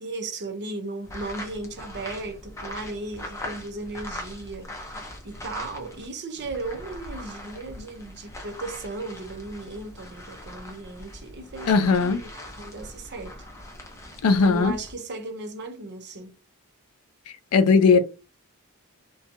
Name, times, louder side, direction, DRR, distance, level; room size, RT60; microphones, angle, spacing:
voice 1, 0.0-13.4 14.4-16.3, right 2 dB, 50° right, 0.6 m, -36 dB
sound 1, 1.0-6.1 6.4-14.9, left 1 dB, 15° left, 0.6 m, -41 dB
voice 2, 11.7-12.2 14.2-14.7 17.5-18.0, left 4 dB, 85° left, 0.4 m, -18 dB
2.6 x 2.2 x 2.6 m
head